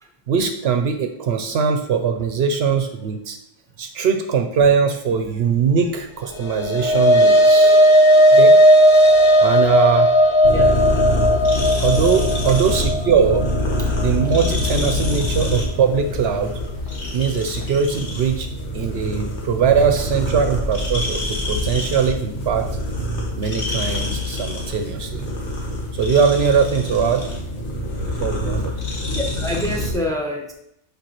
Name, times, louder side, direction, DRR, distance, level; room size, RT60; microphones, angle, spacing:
voice 1, 0.3-3.4 3.8-7.8 8.3-8.6 9.4-10.1 11.8-13.5 14.0-16.6 17.1-18.5 18.7-22.7 23.4-25.3 25.9-27.3 28.0-28.7, right 6 dB, 65° right, 6 dB, 0.8 m, -21 dB
sound 1, 6.3-14.9, equal, 35° left, 0.5 m, -15 dB
sound 2, 10.4-29.9, left 1 dB, 75° left, 1.5 m, -25 dB
voice 2, 29.1-30.5, left 1 dB, 5° left, 1 dB, 0.8 m, -26 dB
7.7 x 4.8 x 3.0 m, 0.76 s
omnidirectional pair, 1.2 m